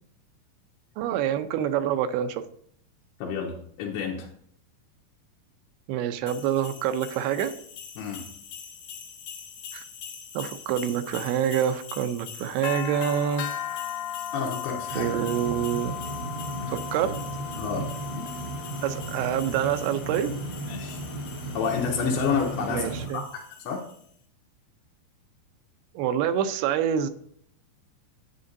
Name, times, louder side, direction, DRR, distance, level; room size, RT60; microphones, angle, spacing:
voice 1, 1.0-2.5 5.9-7.5 9.7-9.8 10.3-13.5 15.0-16.0 16.7-17.2 18.8-20.3 22.7-23.2 26.0-27.1, right 9 dB, 90° right, 9 dB, 2.6 m, -26 dB
voice 2, 3.2-4.3 8.0-8.2 14.3-15.1 17.5-17.9 20.7-21.0 21.5-23.2 23.6-23.8, left 6 dB, 85° left, -1 dB, 2.9 m, -29 dB
sound 1, 6.3-24.0, left 8 dB, 70° left, 2.2 m, -39 dB
sound 2, 14.9-23.1, right 2 dB, 50° left, 0.9 m, -35 dB
9.7 x 9.4 x 2.6 m, 0.65 s
omnidirectional pair, 4.4 m